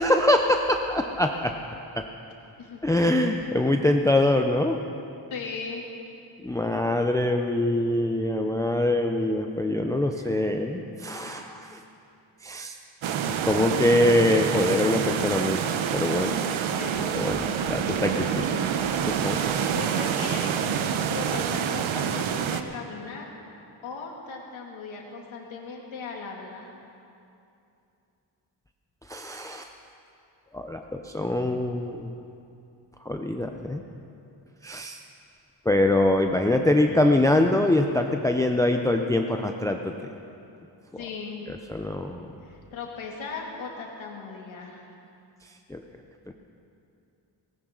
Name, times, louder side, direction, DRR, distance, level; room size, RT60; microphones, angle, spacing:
voice 1, 0.0-1.5 2.0-2.1 2.8-4.8 6.4-11.8 12.4-12.8 13.5-15.6 15.9-16.4 17.2-18.6 19.0-19.4 29.1-29.7 30.5-32.1 33.0-33.8 34.6-35.0 35.7-40.1 41.5-42.3 45.7-45.8, left 1 dB, 5° left, 4 dB, 0.5 m, -24 dB
voice 2, 5.3-5.8 10.1-10.3 11.2-11.5 16.8-17.4 19.2-20.6 20.8-23.3 23.8-26.7 41.0-41.5 42.4-44.9, left 4 dB, 85° left, -1 dB, 2.7 m, -38 dB
sound 1, 13.0-22.6, right 8 dB, 85° right, 0.9 m, -27 dB
18.5 x 17.5 x 3.9 m, 2.7 s
wide cardioid pair, 140°, 46 cm